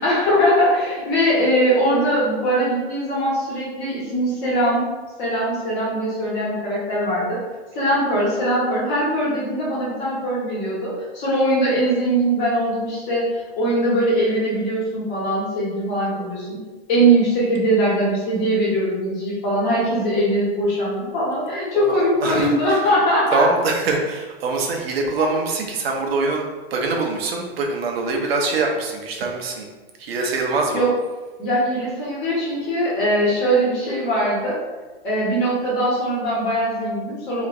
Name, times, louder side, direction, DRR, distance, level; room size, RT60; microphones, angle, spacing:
voice 1, 0.0-4.9 5.2-7.4 7.7-16.6 16.9-23.5 30.7-30.9 31.4-34.6 35.0-37.5, right 1 dB, 30° left, -6 dB, 1.3 m, -21 dB
voice 2, 21.7-22.5 23.3-26.5 26.7-29.7 30.0-30.8, right 3 dB, 70° right, 1 dB, 0.8 m, -23 dB
3.2 x 3.0 x 2.5 m, 1.3 s
hypercardioid pair, 145°, 31 cm